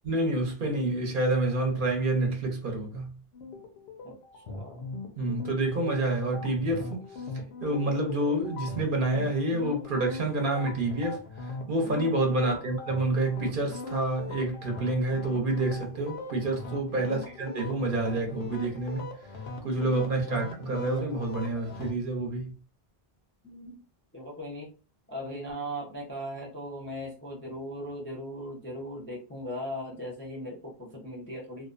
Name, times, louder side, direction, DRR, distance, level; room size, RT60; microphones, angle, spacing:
voice 1, 0.0-3.2 5.2-7.1 7.6-19.1 19.6-22.5, right 2 dB, 60° right, 0.8 m, -28 dB
sound 1, 3.3-21.9, left 3 dB, 90° left, 0.9 m, -40 dB
voice 2, 4.0-4.9 12.6-12.7 17.0-17.2 20.3-20.4 23.4-23.8 24.1-24.7 25.1-31.7, equal, 15° left, 0.5 m, -38 dB
2.6 x 2.1 x 2.4 m
omnidirectional pair, 1.0 m